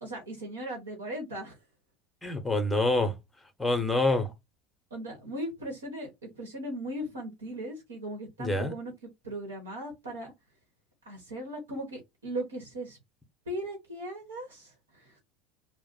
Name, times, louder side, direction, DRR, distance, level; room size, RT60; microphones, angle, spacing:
voice 1, 0.0-1.5 2.6-2.7 4.9-6.1 6.4-8.9 9.2-10.3 11.0-13.0 13.5-14.7 15.0-15.1, right 1 dB, 85° right, 1.1 m, -38 dB
voice 2, 2.2-3.1 3.6-4.3 8.4-8.7, left 2 dB, 10° left, 0.9 m, -26 dB
2.4 x 2.2 x 3.9 m
hypercardioid pair, 75°, 0 cm